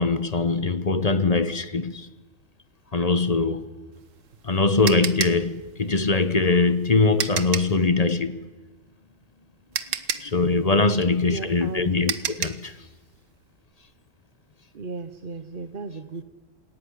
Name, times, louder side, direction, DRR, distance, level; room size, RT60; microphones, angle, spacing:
voice 1, 0.0-2.1 2.9-3.7 4.4-8.4 10.2-12.7, left 3 dB, 35° left, 1.0 m, -22 dB
sound 1, 3.9-7.8 9.2-9.3 9.7-12.7, right 8 dB, 80° right, 1.3 m, -31 dB
voice 2, 10.9-11.9 14.7-16.2, right 4 dB, 45° right, 1.0 m, -35 dB
27.0 x 16.0 x 9.9 m
omnidirectional pair, 1.3 m